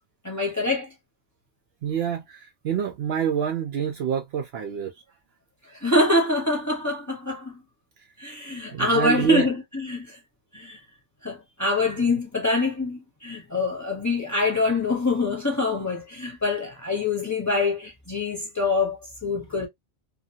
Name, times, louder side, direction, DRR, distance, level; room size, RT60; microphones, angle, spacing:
voice 1, 0.2-0.9 5.8-7.6 8.2-10.2 10.5-10.8 11.2-19.7, left 2 dB, 15° left, 0.9 m, -25 dB
voice 2, 1.8-4.9 8.7-9.5 11.9-12.0, right 8 dB, 65° right, 0.7 m, -27 dB
2.7 x 2.5 x 2.7 m
omnidirectional pair, 1.3 m